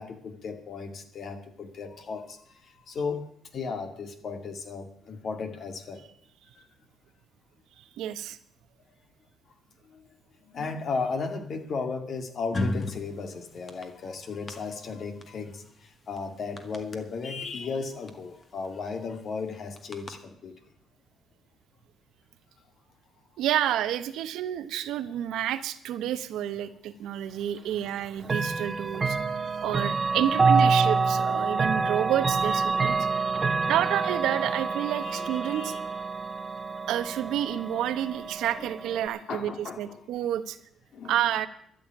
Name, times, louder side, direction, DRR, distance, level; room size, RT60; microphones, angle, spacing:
voice 1, 0.0-2.4 2.9-3.2 3.5-6.0 10.5-15.6 16.1-20.5 28.8-29.3 31.1-31.2 31.8-31.9 35.0-35.8 39.3-40.0 40.9-41.2, left 4 dB, 55° left, 7 dB, 2.1 m, -35 dB
voice 2, 8.0-8.4 23.4-29.2 29.6-33.0 33.6-35.7 36.9-40.6 41.0-41.5, right 11 dB, 85° right, 11 dB, 1.0 m, -29 dB
sound 1, 12.5-13.0 13.5-13.8 14.5-14.6 15.2-15.3 15.5-15.6 16.2-16.3 16.6-17.0 18.1-18.2 18.4-18.7 19.8-20.1, left 2 dB, 40° left, 1.9 m, -30 dB
Chime / Clock, 28.2-39.1, right 4 dB, 30° right, 1.0 m, -27 dB
13.0 x 7.2 x 9.8 m, 0.70 s
cardioid pair, 90°, 0 cm